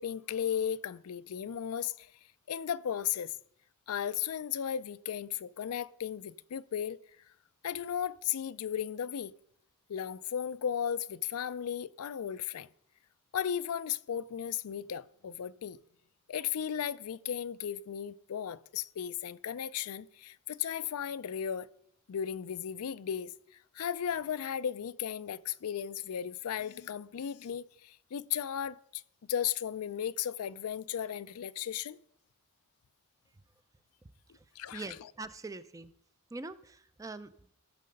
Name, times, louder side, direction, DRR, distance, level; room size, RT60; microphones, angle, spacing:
voice 1, 0.0-2.1 2.5-3.3 3.9-7.0 7.6-9.3 9.9-12.7 13.3-15.8 16.3-21.7 22.1-23.3 23.7-29.0 29.3-32.0 34.6-35.1, left 9 dB, 75° left, 0.4 m, -35 dB
voice 2, 34.7-35.9 36.3-37.5, right 3 dB, 15° right, 0.4 m, -43 dB
15.0 x 6.6 x 5.2 m
head